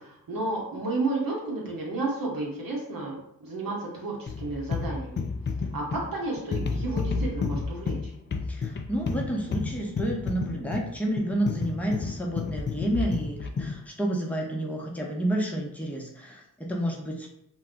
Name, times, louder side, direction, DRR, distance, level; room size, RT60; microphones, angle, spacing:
voice 1, 0.0-5.2 5.7-8.0, right 2 dB, 55° right, -4 dB, 1.0 m, -32 dB
sound 1, 4.3-13.8, left 4 dB, 30° left, 0.4 m, -31 dB
voice 2, 8.5-17.3, right 1 dB, 5° left, -2 dB, 0.8 m, -30 dB
2.2 x 2.2 x 3.7 m, 0.76 s
supercardioid pair, 45°, 40 cm